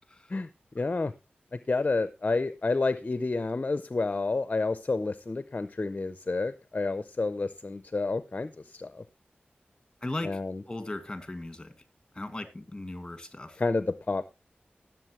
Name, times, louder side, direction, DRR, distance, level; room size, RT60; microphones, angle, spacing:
voice 1, 0.8-1.1 1.5-9.0 10.2-10.6 13.6-14.3, left 3 dB, 40° left, 13 dB, 0.6 m, -29 dB
voice 2, 10.0-10.4 10.7-11.7 12.2-13.6, left 2 dB, 20° left, 9 dB, 2.0 m, -37 dB
18.5 x 7.4 x 3.1 m, 0.24 s
wide cardioid pair, 85°, 4 cm